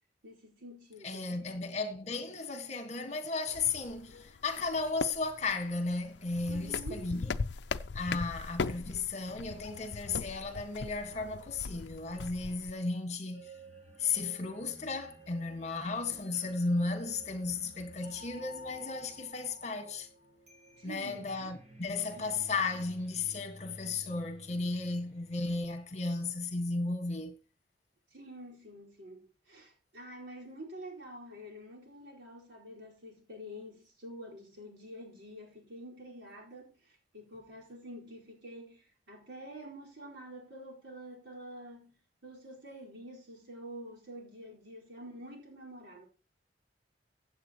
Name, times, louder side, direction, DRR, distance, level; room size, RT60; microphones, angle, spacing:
voice 1, 0.2-1.4 6.5-7.1 20.8-21.3 22.1-22.4 28.1-36.7 37.1-41.9 42.2-46.1, equal, 75° right, 4.6 m, -47 dB
voice 2, 1.0-7.4 7.9-13.5 14.0-20.1 20.8-27.4, left 3 dB, 40° left, 1.7 m, -34 dB
sound 1, 3.5-12.7, left 4 dB, 70° left, 0.5 m, -40 dB
sound 2, 13.3-26.3, equal, 40° right, 3.8 m, -53 dB
16.0 x 8.2 x 3.0 m
head